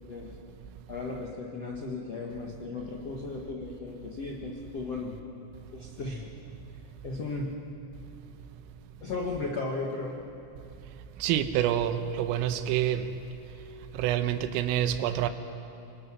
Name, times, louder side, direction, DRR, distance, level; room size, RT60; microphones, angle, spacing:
voice 1, 0.9-5.2 5.7-6.3 7.0-7.5 9.0-10.2, left 3 dB, 80° left, 1.4 m, -35 dB
voice 2, 11.2-13.1 13.9-15.3, right 11 dB, 85° right, 3.6 m, -27 dB
27.0 x 25.5 x 6.2 m
omnidirectional pair, 5.9 m